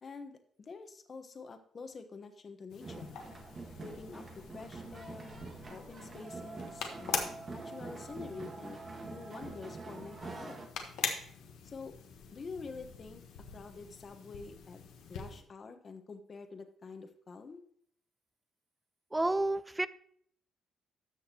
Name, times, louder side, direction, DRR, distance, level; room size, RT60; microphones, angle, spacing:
voice 1, 0.0-3.2 3.8-5.4 5.7-10.6 11.6-11.9 12.3-13.2 13.5-14.8 15.1-17.6, left 4 dB, 40° left, 7 dB, 1.2 m, -47 dB
sound 1, 2.7-15.4, left 7 dB, 85° left, 1.3 m, -44 dB
sound 2, 2.8-10.7, right 3 dB, 35° right, 1.5 m, -46 dB
voice 2, 19.1-19.9, right 2 dB, 15° right, 16 dB, 0.4 m, -30 dB
13.0 x 6.4 x 3.0 m, 0.62 s
cardioid pair, 90°, 0 cm